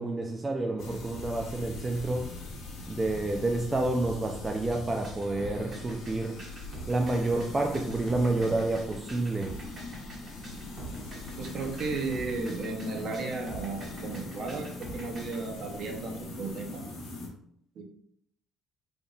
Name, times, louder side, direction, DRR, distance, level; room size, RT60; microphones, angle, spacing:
voice 1, 0.0-2.3 2.9-6.3 6.9-9.5, right 2 dB, 20° right, 1 dB, 0.4 m, -29 dB
sound 1, 0.8-17.3, left 2 dB, 75° left, 1.2 m, -41 dB
sound 2, 4.7-15.4, right 3 dB, 35° right, 1.2 m, -45 dB
voice 2, 11.4-14.7 14.9-16.8 17.8-17.9, right 3 dB, 50° right, 3 dB, 0.8 m, -34 dB
3.9 x 3.5 x 2.4 m, 0.67 s
cardioid pair, 135°, 0 cm